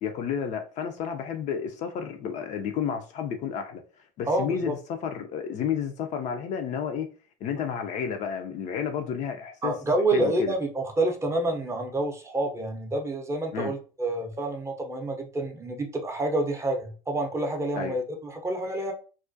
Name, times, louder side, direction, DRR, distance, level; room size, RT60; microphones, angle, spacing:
voice 1, 0.0-3.8 4.2-7.1 7.4-9.7 10.1-10.6 13.5-13.7 17.7-17.9, left 7 dB, 45° left, 0.4 m, -31 dB
voice 2, 4.3-4.7 9.6-18.9, right 2 dB, 15° right, 0.5 m, -28 dB
2.3 x 2.1 x 2.5 m
hypercardioid pair, 90°, 17 cm